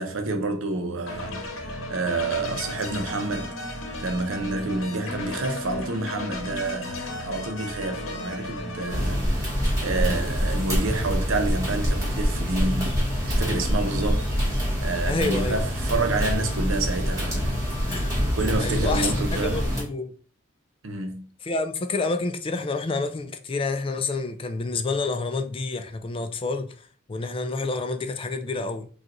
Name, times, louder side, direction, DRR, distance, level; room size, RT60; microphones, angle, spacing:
voice 1, 0.0-3.5 4.0-14.3 14.8-17.5 18.2-19.6 20.8-21.2, right 2 dB, 80° right, 0.7 m, -29 dB
sound 1, 1.1-9.1, left 2 dB, 85° left, 0.8 m, -34 dB
sound 2, 8.9-19.8, equal, 15° right, 1.7 m, -25 dB
voice 2, 15.0-15.6 17.7-18.1 18.6-20.1 21.4-28.9, left 3 dB, 25° left, 0.4 m, -29 dB
5.0 x 2.4 x 2.9 m
head